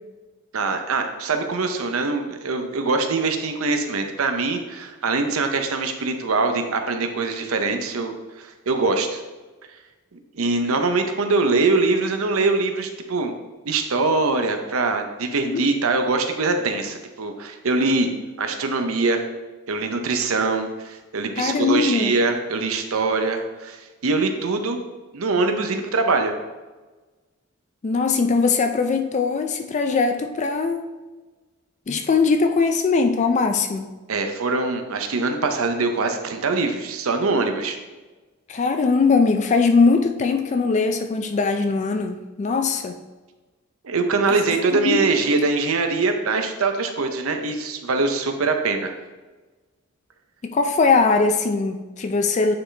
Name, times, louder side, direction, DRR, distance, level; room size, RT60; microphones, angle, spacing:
voice 1, 0.5-9.2 10.3-13.3 13.6-18.1 18.4-19.2 19.7-24.8 25.1-26.3 34.1-37.8 43.8-48.9, right 3 dB, 80° right, 6 dB, 0.7 m, -23 dB
voice 2, 21.4-22.2 27.8-30.9 31.9-33.9 38.5-43.0 44.3-44.4 44.7-45.1 50.4-52.5, left 4 dB, 35° left, 6 dB, 0.3 m, -21 dB
8.7 x 3.9 x 3.3 m, 1.2 s
head